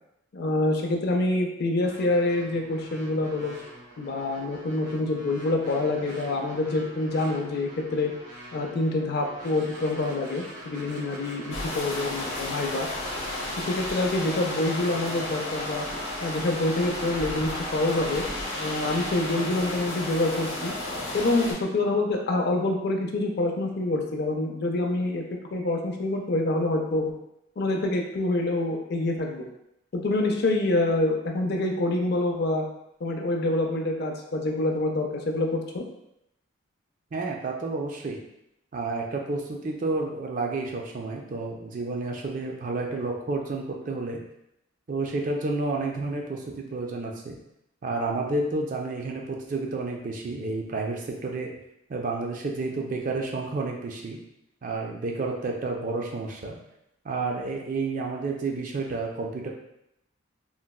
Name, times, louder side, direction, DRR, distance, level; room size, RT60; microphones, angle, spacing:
voice 1, 0.3-3.6 4.0-8.1 8.5-12.9 13.6-15.9 16.2-18.2 18.5-20.7 21.1-27.1 27.6-29.5 29.9-32.6 33.0-35.8, left 2 dB, 50° left, 2 dB, 0.4 m, -26 dB
sound 1, 1.8-20.7, equal, 80° right, 1.0 m, -43 dB
sound 2, 11.5-21.5, left 1 dB, 90° left, 0.8 m, -33 dB
voice 2, 37.1-38.2 38.7-44.2 44.9-47.4 47.8-51.5 51.9-54.2 54.6-56.6 57.0-59.5, right 3 dB, 40° right, 1 dB, 0.4 m, -30 dB
3.8 x 2.2 x 2.3 m, 0.82 s
head